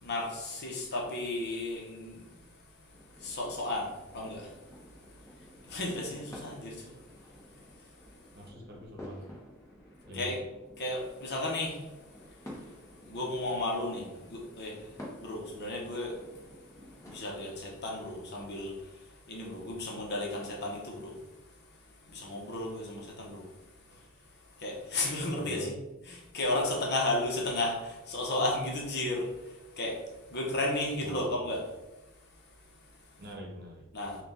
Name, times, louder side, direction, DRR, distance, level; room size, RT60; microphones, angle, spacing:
voice 1, 0.0-2.2 3.2-3.9 4.1-4.5 5.7-6.9 10.1-10.4 10.8-11.8 13.1-14.8 15.2-16.2 17.1-18.7 19.3-21.1 22.1-23.4 24.6-25.7 26.1-29.3 29.8-30.0 30.3-31.6 33.9-34.2, left 2 dB, 50° left, 0 dB, 0.9 m, -33 dB
sound 1, 2.9-17.7, left 1 dB, 15° left, 1.1 m, -51 dB
voice 2, 8.3-9.2 10.1-10.4 23.9-24.0 25.3-25.7 31.0-31.7 33.2-33.9, equal, 45° right, -1 dB, 0.9 m, -45 dB
4.4 x 2.4 x 3.8 m, 1.0 s
head